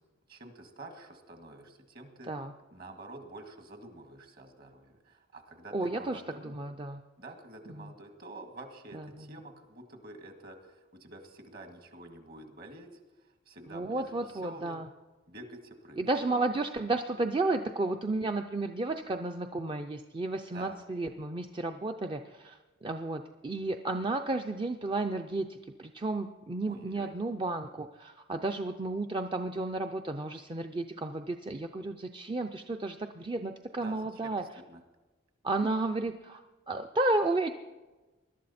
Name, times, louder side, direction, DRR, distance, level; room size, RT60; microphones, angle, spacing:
voice 1, 0.3-2.3 2.7-6.5 7.2-14.8 15.3-16.0 20.5-20.8 26.7-27.1 33.8-34.8, right 2 dB, 50° right, 5 dB, 1.9 m, -48 dB
voice 2, 5.7-7.0 7.8-7.9 8.9-9.2 13.7-14.9 16.0-34.4 35.4-37.5, right 2 dB, 25° right, 5 dB, 0.5 m, -32 dB
20.5 x 12.0 x 4.2 m, 1.2 s
head